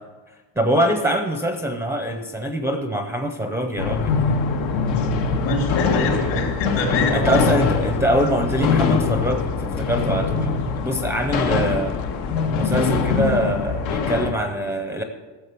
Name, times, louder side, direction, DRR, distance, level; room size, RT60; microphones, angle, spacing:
voice 1, 0.6-4.2 7.1-12.0 12.6-15.0, right 1 dB, 5° right, 6 dB, 0.5 m, -23 dB
sound 1, 3.8-14.3, left 5 dB, 85° left, 1.5 m, -23 dB
sound 2, 4.9-13.5, left 8 dB, 40° left, 0.5 m, -37 dB
voice 2, 5.4-7.4, left 2 dB, 65° left, -1 dB, 3.8 m, -24 dB
14.0 x 7.1 x 6.8 m, 1.3 s
cardioid pair, 155°, 46 cm